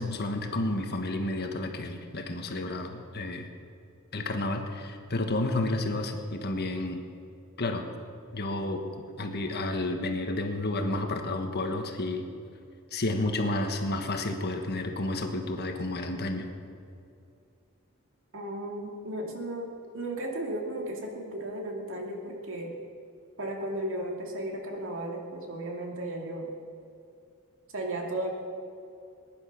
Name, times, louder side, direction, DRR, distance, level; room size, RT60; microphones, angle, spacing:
voice 1, 0.0-3.5 4.1-7.0 7.6-7.9 8.3-12.2 12.9-16.5, left 2 dB, 50° left, 5 dB, 1.4 m, -31 dB
voice 2, 18.3-22.7 23.4-26.5 27.7-28.3, right 1 dB, 65° right, 1 dB, 2.5 m, -35 dB
20.5 x 11.0 x 6.0 m, 2.5 s
head